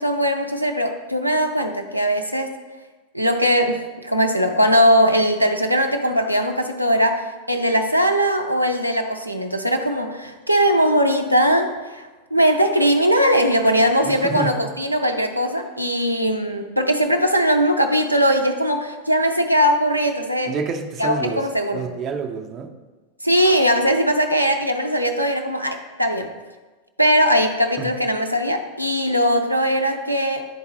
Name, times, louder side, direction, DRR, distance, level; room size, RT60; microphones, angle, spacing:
voice 1, 0.0-2.5 3.1-20.5 21.0-21.9 23.2-26.3 27.0-30.5, equal, 90° right, 4 dB, 0.4 m, -20 dB
voice 2, 14.0-14.5 20.5-22.7 27.8-27.9, right 5 dB, 30° right, 3 dB, 0.6 m, -28 dB
10.5 x 3.6 x 2.9 m, 1.2 s
figure-of-eight pair, 90°, 0 cm